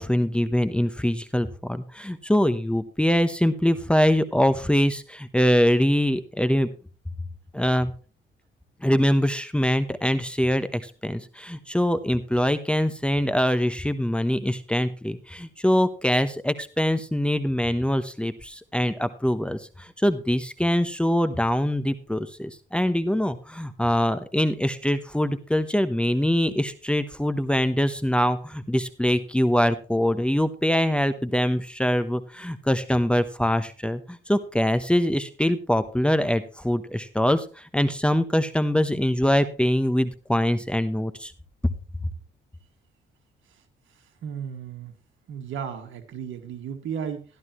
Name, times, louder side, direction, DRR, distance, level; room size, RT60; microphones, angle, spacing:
voice 1, 0.0-6.7 7.5-7.9 8.8-41.3, equal, 5° left, 11 dB, 0.9 m, -23 dB
voice 2, 43.9-44.9 45.3-47.2, right 7 dB, 75° right, 6 dB, 2.1 m, -35 dB
13.5 x 12.0 x 3.1 m, 0.35 s
cardioid pair, 90°, 20 cm